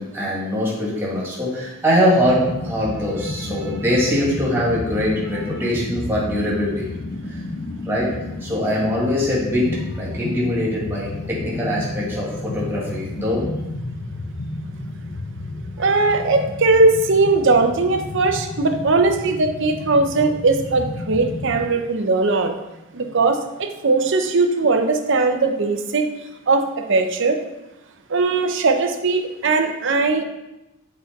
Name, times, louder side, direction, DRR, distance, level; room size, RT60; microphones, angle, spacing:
voice 1, 0.0-6.9 7.3-7.4 7.9-8.1 8.4-9.7 9.9-13.5 15.8-16.1, equal, 10° right, -6 dB, 2.0 m, -22 dB
sound 1, 2.2-21.7, left 2 dB, 40° left, 0.5 m, -32 dB
voice 2, 15.8-22.5 22.9-26.1 26.5-27.4 28.1-30.2, right 3 dB, 60° right, 5 dB, 0.7 m, -19 dB
7.1 x 4.3 x 4.0 m, 0.98 s
head